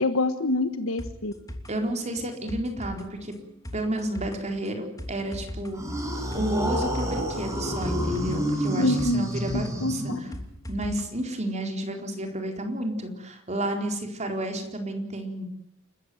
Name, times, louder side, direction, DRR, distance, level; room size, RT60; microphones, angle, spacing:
voice 1, 0.0-1.3 8.8-9.3 9.8-10.2, left 2 dB, 80° left, 9 dB, 1.5 m, -25 dB
sound 1, 1.0-11.0 11.3-11.4, left 1 dB, 15° left, 2.9 m, -40 dB
voice 2, 1.7-3.3 3.7-5.8 6.3-10.3 10.7-15.5, right 1 dB, 35° right, 4 dB, 4.2 m, -31 dB
sound 2, 5.7-10.6, equal, 15° right, 7.3 m, -29 dB
29.5 x 14.5 x 9.5 m, 0.79 s
head